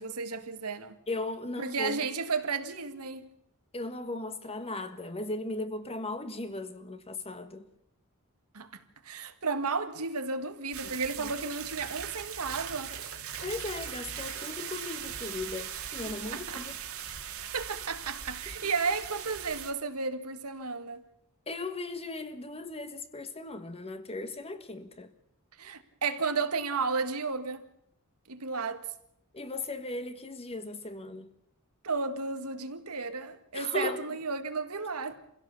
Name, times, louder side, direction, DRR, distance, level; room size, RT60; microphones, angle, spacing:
voice 1, 0.0-1.0 1.6-3.3 8.5-12.9 16.1-16.7 17.4-21.0 25.6-27.7 28.3-28.8 31.8-35.1, right 4 dB, 90° right, 1.7 m, -33 dB
voice 2, 1.1-2.1 3.7-7.7 10.8-11.3 13.4-16.7 21.5-25.1 29.3-31.3 33.5-34.0, left 2 dB, 25° left, 1.4 m, -37 dB
sound 1, 10.7-19.7, right 9 dB, 70° right, 2.3 m, -40 dB
25.5 x 16.5 x 7.0 m
head